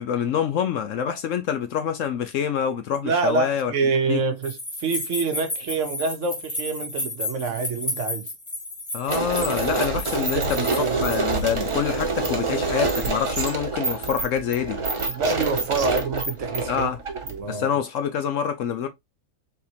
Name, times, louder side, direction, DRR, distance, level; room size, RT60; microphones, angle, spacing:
voice 1, 0.0-3.7 4.1-4.2 8.9-14.8 16.7-17.0 17.5-18.9, left 8 dB, 70° left, 0.8 m, -26 dB
voice 2, 3.0-8.3 10.1-11.0 15.1-17.7, right 4 dB, 60° right, 1.0 m, -27 dB
sound 1, 4.4-11.4, left 2 dB, 20° left, 1.5 m, -32 dB
sound 2, 9.1-17.6, right 3 dB, 30° right, 0.6 m, -26 dB
4.4 x 3.6 x 2.7 m
omnidirectional pair, 1.6 m